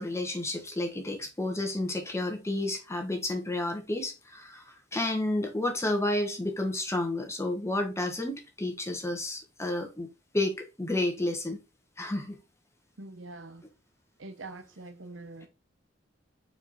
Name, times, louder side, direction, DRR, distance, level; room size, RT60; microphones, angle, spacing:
voice 1, 0.0-10.1 10.3-11.6 12.0-12.4, left 1 dB, 15° left, 1.4 m, -31 dB
voice 2, 13.0-13.7 14.2-15.5, right 2 dB, 90° right, 0.9 m, -44 dB
5.0 x 4.7 x 4.2 m
head